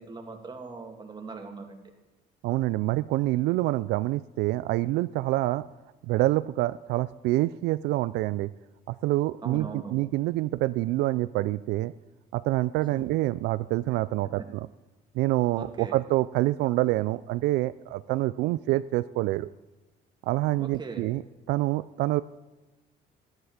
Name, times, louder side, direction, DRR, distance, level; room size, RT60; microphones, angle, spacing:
voice 1, 0.0-1.8 9.4-9.9 12.9-13.0 15.6-16.0 20.6-21.1, right 4 dB, 25° right, 2 dB, 2.5 m, -40 dB
voice 2, 2.4-5.7 6.0-8.5 8.9-11.9 12.3-14.7 15.1-19.5 20.2-21.2 21.5-22.2, right 17 dB, 85° right, 15 dB, 0.4 m, -26 dB
13.5 x 10.5 x 7.3 m, 1.1 s
cardioid pair, 110°, 17 cm